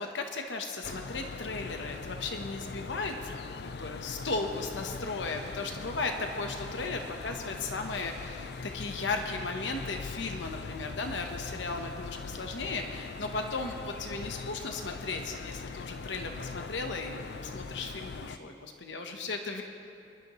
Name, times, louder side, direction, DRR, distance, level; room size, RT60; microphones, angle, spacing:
voice 1, 0.0-3.3 3.6-19.6, left 3 dB, 80° left, 4 dB, 1.0 m, -36 dB
Rain in Tallinn, 0.8-18.4, left 4 dB, 60° left, 0.4 m, -41 dB
27.0 x 11.5 x 3.1 m, 2.6 s
head